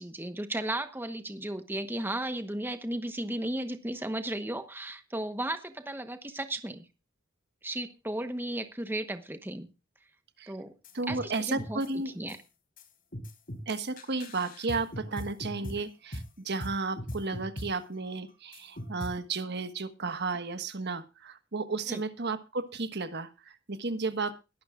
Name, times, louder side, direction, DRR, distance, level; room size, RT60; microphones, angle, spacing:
voice 1, 0.0-6.9 7.6-9.7 10.5-10.7 11.1-11.8 12.2-12.4 21.9-22.0, right 1 dB, 10° right, 8 dB, 1.1 m, -35 dB
sound 1, 10.8-11.9 12.3-12.4 12.8-12.9 13.1-15.8 16.1-16.3 16.6-19.2, equal, 45° left, 3.9 m, -39 dB
voice 2, 10.9-12.1 13.7-24.4, right 3 dB, 55° right, 10 dB, 1.4 m, -33 dB
21.5 x 12.0 x 2.4 m, 0.28 s
head